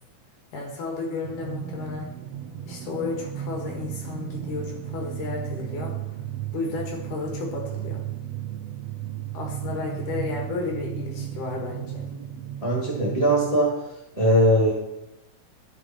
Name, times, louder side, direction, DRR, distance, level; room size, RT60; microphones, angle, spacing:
voice 1, 0.5-2.1 2.7-6.2 6.5-8.1 9.3-12.1, left 4 dB, 75° left, 0 dB, 3.4 m, -33 dB
sound 1, 1.2-13.6, right 11 dB, 90° right, 1.4 m, -35 dB
voice 2, 12.6-13.8 14.1-14.7, equal, 15° right, -4 dB, 1.5 m, -20 dB
13.5 x 5.9 x 4.3 m, 0.92 s
omnidirectional pair, 3.6 m